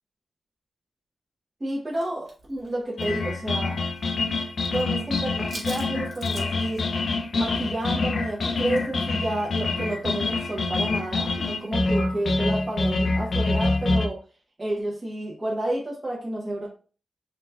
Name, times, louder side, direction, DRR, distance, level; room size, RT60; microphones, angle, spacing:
voice 1, 1.6-3.7 4.7-6.8 7.3-14.1 14.6-16.7, right 1 dB, 20° right, -5 dB, 0.9 m, -30 dB
sound 1, 1.9-4.1 4.4-4.8 5.1-6.8, right 2 dB, 50° right, 1.1 m, -43 dB
sound 2, 3.0-14.1, left 3 dB, 60° left, 0.4 m, -26 dB
3.9 x 2.3 x 3.3 m, 0.38 s
wide cardioid pair, 165°, 0 cm